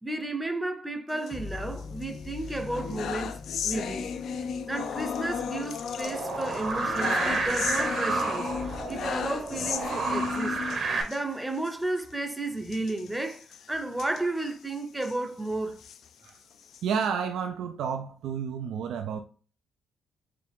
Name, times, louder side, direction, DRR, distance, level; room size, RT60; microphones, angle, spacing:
voice 1, 0.0-4.2 4.7-10.6 11.1-15.8, right 2 dB, 10° right, 0.6 m, -33 dB
sound 1, 1.1-2.1 2.4-11.2 11.6-11.7 12.0-12.1 12.7-15.2 15.7-17.1, left 7 dB, 70° left, 0.3 m, -35 dB
sound 2, 1.3-9.9, left 5 dB, 40° left, 0.7 m, -41 dB
sound 3, 6.0-11.0, right 4 dB, 55° right, 1.0 m, -30 dB
voice 2, 16.8-19.2, right 7 dB, 80° right, 0.3 m, -30 dB
4.6 x 2.5 x 3.5 m
cardioid pair, 90°, 0 cm